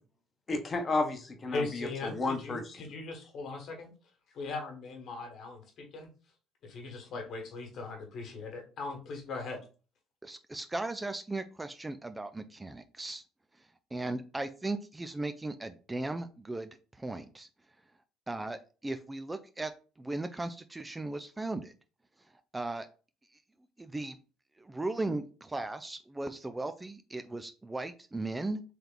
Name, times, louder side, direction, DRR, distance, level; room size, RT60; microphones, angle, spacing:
voice 1, 0.5-2.6, left 3 dB, 30° left, 5 dB, 1.0 m, -32 dB
voice 2, 1.5-3.9 4.3-6.1 6.6-9.6, left 3 dB, 60° left, 2 dB, 1.4 m, -39 dB
voice 3, 10.2-13.2 13.9-17.5 18.3-19.7 20.0-21.7 22.5-22.9 23.8-24.2 24.6-28.6, right 2 dB, 15° right, 10 dB, 0.4 m, -37 dB
3.4 x 2.8 x 3.9 m, 0.35 s
supercardioid pair, 75°, 0 cm